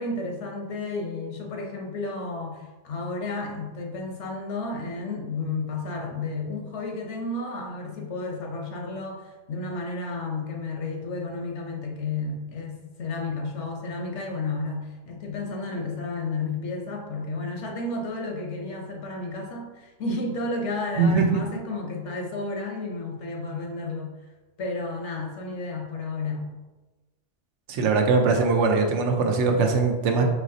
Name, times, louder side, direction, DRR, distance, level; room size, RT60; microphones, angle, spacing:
voice 1, 0.0-24.1 24.6-26.6, left 3 dB, 80° left, 2 dB, 1.0 m, -32 dB
voice 2, 21.0-21.4 27.7-30.2, right 4 dB, 85° right, 3 dB, 0.9 m, -21 dB
4.7 x 3.0 x 2.6 m, 1.2 s
omnidirectional pair, 1.2 m